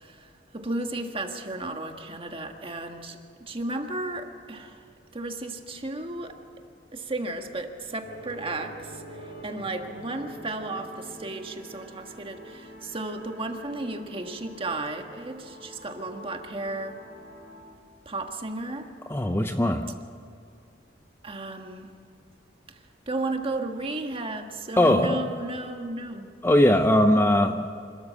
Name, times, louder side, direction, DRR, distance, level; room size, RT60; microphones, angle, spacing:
voice 1, 0.0-4.8 5.1-6.4 6.9-9.2 9.4-17.0 18.0-18.9 21.2-21.9 23.1-26.3, right 2 dB, 30° right, 4 dB, 1.6 m, -34 dB
sound 1, 8.0-17.6, equal, 65° left, 5.8 m, -46 dB
voice 2, 19.1-20.0 24.8-25.3 26.4-27.7, left 1 dB, 15° left, 7 dB, 0.6 m, -20 dB
26.0 x 13.5 x 7.5 m, 2.4 s
head